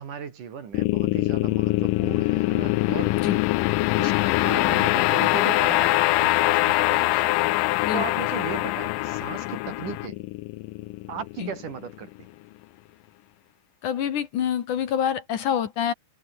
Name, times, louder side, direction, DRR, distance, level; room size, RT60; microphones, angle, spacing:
voice 1, 0.0-3.1 4.0-7.4 7.9-10.2 11.1-12.3, right 7 dB, 55° right, 4.1 m, -36 dB
sound 1, 0.7-11.9, left 20 dB, 80° left, 2.0 m, -23 dB
voice 2, 13.8-15.9, left 9 dB, 60° left, 2.9 m, -26 dB
omnidirectional pair, 4.4 m